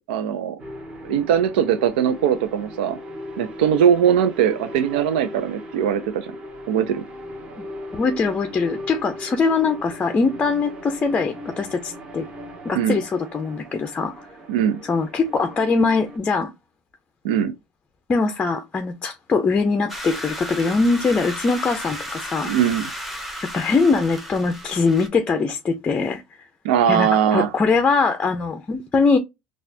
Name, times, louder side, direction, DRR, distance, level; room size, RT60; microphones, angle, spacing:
voice 1, 0.1-0.6 1.0-3.0 3.4-6.3 6.7-7.0 12.7-13.0 14.5-14.8 17.2-17.5 22.4-22.9 26.6-27.5, right 9 dB, 90° right, 0.6 m, -20 dB
sound 1, 0.6-16.2, equal, 20° right, 1.5 m, -38 dB
voice 2, 7.9-12.3 12.6-14.3 14.8-16.5 18.1-22.5 23.4-26.4 26.9-29.2, left 4 dB, 20° left, 0.5 m, -22 dB
sound 2, 19.9-25.1, equal, ahead, 1.0 m, -34 dB
4.1 x 2.4 x 2.6 m
supercardioid pair, 130°, 5 cm